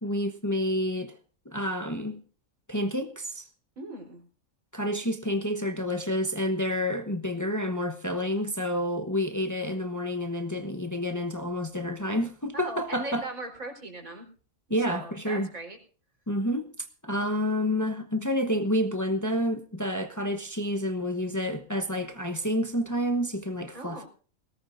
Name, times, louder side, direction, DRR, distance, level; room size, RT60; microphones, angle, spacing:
voice 1, 0.0-1.2 1.4-2.2 2.7-3.5 4.7-13.3 14.7-15.5 16.3-24.0, equal, 15° left, 1.0 m, -29 dB
voice 2, 3.8-4.2 12.5-14.3 14.9-15.8 23.7-24.1, right 2 dB, 90° right, 4.6 m, -39 dB
20.5 x 17.5 x 2.6 m
omnidirectional pair, 1.4 m